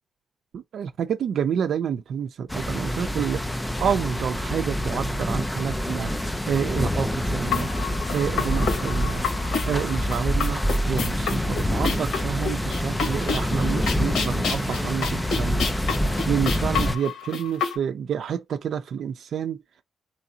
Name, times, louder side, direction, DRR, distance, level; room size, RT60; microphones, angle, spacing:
voice 1, 0.5-3.4 3.8-6.1 6.5-7.7 8.1-9.2 9.7-10.6 10.9-15.7 16.3-19.6, right 8 dB, 65° right, 0.4 m, -28 dB
sound 1, 2.5-17.0, equal, 5° left, 0.4 m, -26 dB
sound 2, 7.5-17.8, left 6 dB, 90° left, 1.6 m, -30 dB
3.8 x 3.2 x 2.7 m
wide cardioid pair, 155°, 0 cm